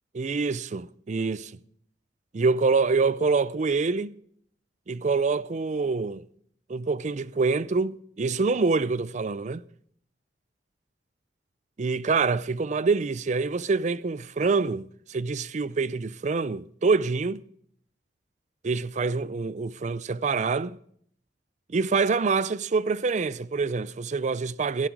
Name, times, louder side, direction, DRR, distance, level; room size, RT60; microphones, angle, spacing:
voice 1, 0.1-1.5 2.3-4.2 4.9-6.2 6.7-9.6 11.8-17.4 18.6-20.8 21.7-24.9, right 4 dB, 40° right, 0.4 m, -26 dB
16.5 x 11.5 x 4.7 m
head